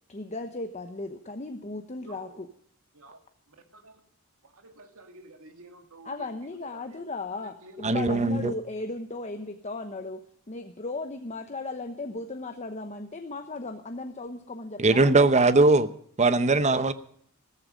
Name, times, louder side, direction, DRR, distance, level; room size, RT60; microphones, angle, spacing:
voice 1, 0.1-2.5 6.0-10.2 10.5-15.1, left 2 dB, 30° left, 1.0 m, -36 dB
voice 2, 2.0-2.4 2.9-3.2 3.5-4.0 4.4-6.3 6.6-7.0 7.6-7.9, right 2 dB, 70° right, 2.2 m, -50 dB
voice 3, 7.8-8.5 14.8-15.9 16.2-16.9, right 3 dB, 30° right, 0.8 m, -20 dB
15.0 x 14.0 x 5.2 m
head